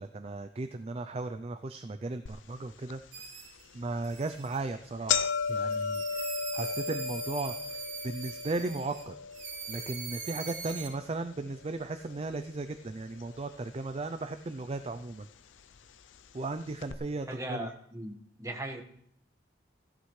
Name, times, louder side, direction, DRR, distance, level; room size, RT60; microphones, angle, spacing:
voice 1, 0.0-3.3 3.7-9.1 9.7-15.3 16.3-17.7, right 3 dB, 30° right, 9 dB, 0.4 m, -36 dB
sound 1, 2.3-2.4 2.9-3.0 3.8-4.0 4.3-4.5 4.7-12.9 13.2-13.9 14.7-14.8 15.8-15.9 16.1-16.2 16.8-16.9, left 6 dB, 85° left, 0.5 m, -35 dB
sound 2, 3.1-3.6 4.0-4.6 5.1-9.0 9.3-10.9, right 5 dB, 75° right, 3.0 m, -42 dB
voice 2, 17.3-18.8, right 1 dB, 15° right, 2 dB, 1.5 m, -38 dB
15.5 x 11.5 x 3.2 m, 0.68 s
head